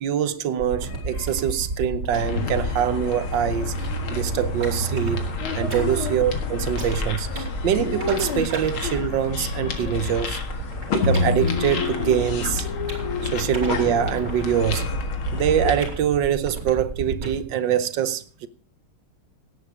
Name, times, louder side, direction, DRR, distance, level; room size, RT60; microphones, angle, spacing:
voice 1, 0.0-5.3 5.6-10.4 10.9-12.7 13.3-14.8 15.3-18.5, right 9 dB, 70° right, 1.5 m, -24 dB
sound 1, 0.6-17.4, right 2 dB, 40° right, 4.1 m, -34 dB
sound 2, 0.7-1.6 2.3-5.0 6.7-6.9 7.2-10.2 11.0-15.8, left 4 dB, 45° left, 1.3 m, -31 dB
sound 3, 2.1-15.9, left 3 dB, 85° left, 2.6 m, -29 dB
17.5 x 8.9 x 4.9 m
omnidirectional pair, 2.2 m